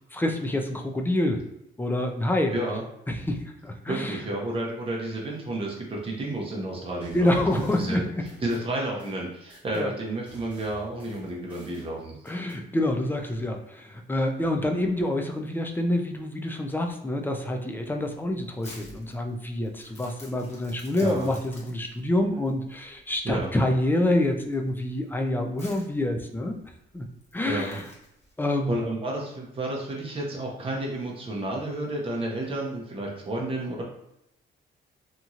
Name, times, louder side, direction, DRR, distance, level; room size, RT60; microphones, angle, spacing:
voice 1, 0.1-1.4 1.8-2.5 3.1-4.3 7.1-8.2 9.7-9.9 12.2-26.6 26.9-27.1 27.3-27.9 28.4-28.8, left 1 dB, 10° left, 3 dB, 0.4 m, -27 dB
voice 2, 3.9-8.0 8.4-12.2 21.0-21.3 23.2-23.5 27.4-27.8 28.7-33.8, right 1 dB, 30° right, -2 dB, 0.7 m, -31 dB
sound 1, 7.0-9.9 10.3-12.6, equal, 10° right, 1.4 m, -51 dB
Crumpling crinkling, 17.8-28.3, left 1 dB, 35° left, 1.1 m, -51 dB
2.9 x 2.6 x 2.4 m, 0.81 s
cardioid pair, 90°, 20 cm